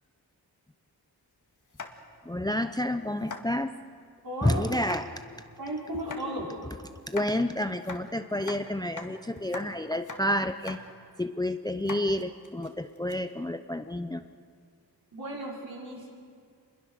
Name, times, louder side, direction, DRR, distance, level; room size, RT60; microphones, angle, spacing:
sound 1, 1.7-2.3 2.7-2.8 3.2-3.4 4.7-5.0 5.9-6.2 7.0-7.3 7.8-8.6 9.0-9.1 9.4-9.7 9.9-10.2 10.5-10.8 11.2-11.3 11.8-13.2, left 4 dB, 45° left, 2.0 m, -42 dB
voice 1, 2.2-3.7 4.4-5.1 7.1-10.8 11.2-14.3, left 1 dB, 10° left, 10 dB, 0.6 m, -29 dB
voice 2, 4.2-4.8 5.6-6.5 15.1-16.1, right 1 dB, 60° right, -3 dB, 5.5 m, -35 dB
27.5 x 22.0 x 6.5 m, 2.2 s
wide cardioid pair, 105°, 41 cm